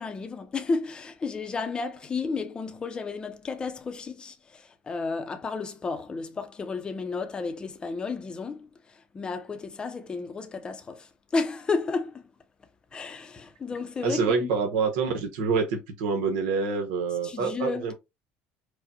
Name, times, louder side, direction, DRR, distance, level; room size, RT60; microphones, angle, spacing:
voice 1, 0.0-12.2 12.9-14.5 17.2-17.8, left 4 dB, 20° left, 0.5 m, -32 dB
voice 2, 14.0-17.9, right 5 dB, 85° right, 0.9 m, -26 dB
4.8 x 2.1 x 2.7 m
cardioid pair, 130°, 4 cm